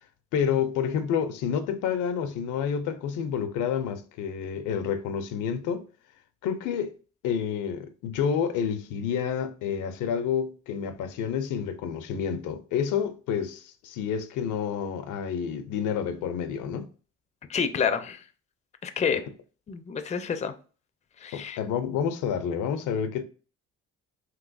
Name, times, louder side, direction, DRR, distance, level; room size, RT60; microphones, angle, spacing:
voice 1, 0.3-5.9 6.4-7.0 7.2-16.9 21.3-23.2, left 7 dB, 85° left, 0.5 m, -29 dB
voice 2, 17.5-18.2 18.8-19.2 19.7-20.5 21.2-21.6, left 6 dB, 25° left, 0.4 m, -28 dB
3.1 x 2.9 x 2.5 m
cardioid pair, 90°, 30 cm